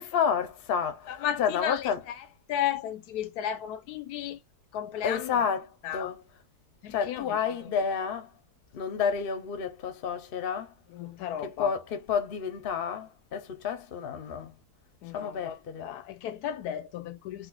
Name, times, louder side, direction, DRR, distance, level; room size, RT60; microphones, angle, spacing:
voice 1, 0.0-2.0 5.0-6.2 6.9-8.3 8.7-10.7 11.4-14.6 15.1-15.8, left 7 dB, 50° left, 0.8 m, -30 dB
voice 2, 1.1-4.4 4.7-5.5 5.8-6.1 6.8-7.7 10.9-11.7 15.0-17.5, left 10 dB, 80° left, 1.1 m, -34 dB
4.2 x 2.7 x 2.3 m
omnidirectional pair, 1.6 m